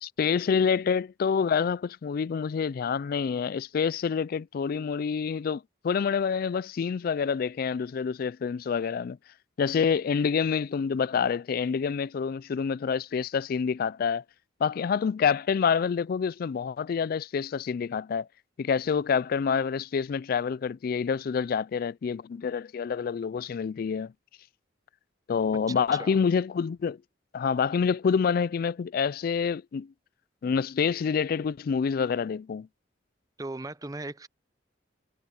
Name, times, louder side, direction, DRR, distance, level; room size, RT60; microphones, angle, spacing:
voice 1, 0.0-9.2 9.6-14.2 14.6-18.3 18.6-24.1 25.3-27.0 27.3-29.9 30.4-32.7, left 6 dB, 50° left, 0.3 m, -27 dB
voice 2, 25.7-26.2 33.4-34.3, right 2 dB, 20° right, 0.7 m, -37 dB
head